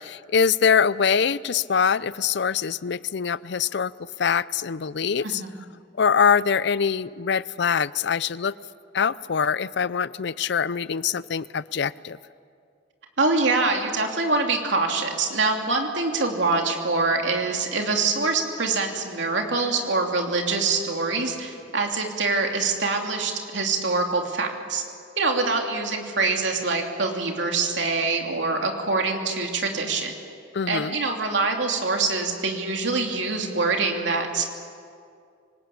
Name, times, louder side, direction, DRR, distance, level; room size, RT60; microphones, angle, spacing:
voice 1, 0.0-3.9 4.2-5.4 6.0-8.5 8.9-12.2 30.5-30.9, left 6 dB, 65° left, 18 dB, 0.5 m, -23 dB
voice 2, 5.2-5.6 13.2-24.8 25.2-30.1 30.7-34.4, right 3 dB, 75° right, 2 dB, 3.0 m, -25 dB
25.5 x 19.5 x 8.6 m, 2.3 s
head